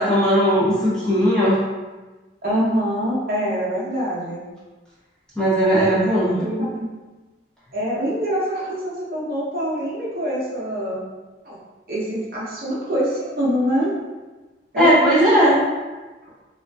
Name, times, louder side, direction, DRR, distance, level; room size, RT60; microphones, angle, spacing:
voice 1, 0.0-1.6 5.4-6.4 14.8-15.6, equal, 5° left, -10 dB, 0.5 m, -17 dB
voice 2, 2.4-4.4 5.6-5.9 6.4-6.9 7.7-11.0 11.4-11.6 11.9-13.9 14.7-15.4, equal, 50° right, -6 dB, 0.6 m, -25 dB
2.4 x 2.4 x 2.2 m, 1.2 s
head